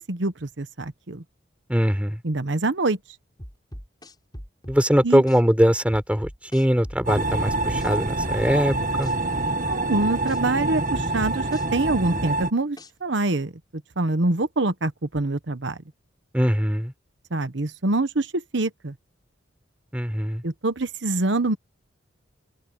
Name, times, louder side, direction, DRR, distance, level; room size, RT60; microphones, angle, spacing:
voice 1, 0.1-1.2 2.2-3.0 5.0-5.2 9.7-11.4 11.7-13.5 14.0-15.8 17.3-18.9 20.4-21.6, right 2 dB, 65° right, 1.1 m, -25 dB
voice 2, 1.7-2.2 4.7-9.1 16.3-16.9 19.9-20.4, equal, 5° right, 4.0 m, -21 dB
sound 1, 3.4-4.8 5.3-5.4 5.9-7.3 7.8-7.9 8.2-9.8 10.3-10.4 10.9-12.3 12.8-12.9, equal, 20° left, 6.9 m, -40 dB
sound 2, 7.1-12.5, right 2 dB, 40° right, 1.8 m, -26 dB
open air
head